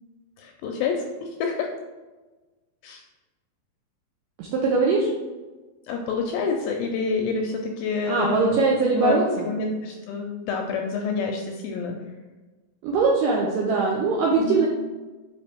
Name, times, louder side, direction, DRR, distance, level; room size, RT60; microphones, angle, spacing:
voice 1, 0.4-1.7 2.8-3.0 5.9-8.6 9.0-12.0 14.4-14.6, left 5 dB, 80° left, 2 dB, 2.1 m, -28 dB
voice 2, 4.4-5.1 8.1-9.5 12.8-14.7, right 4 dB, 80° right, -2 dB, 1.9 m, -21 dB
5.7 x 5.4 x 3.4 m, 1.2 s
omnidirectional pair, 4.6 m